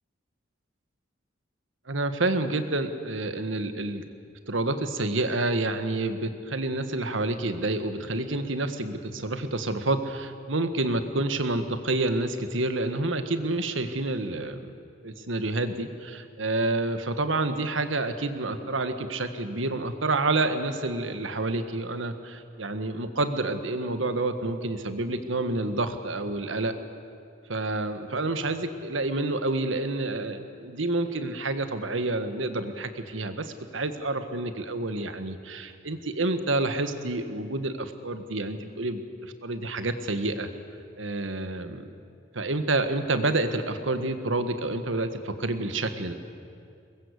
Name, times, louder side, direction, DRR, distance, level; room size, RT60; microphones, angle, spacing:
voice 1, 1.9-4.0 4.5-14.7 15.0-26.7 27.5-40.5 41.0-41.9 42.3-46.1, right 2 dB, 90° right, 9 dB, 1.6 m, -28 dB
23.5 x 20.5 x 8.3 m, 2.4 s
head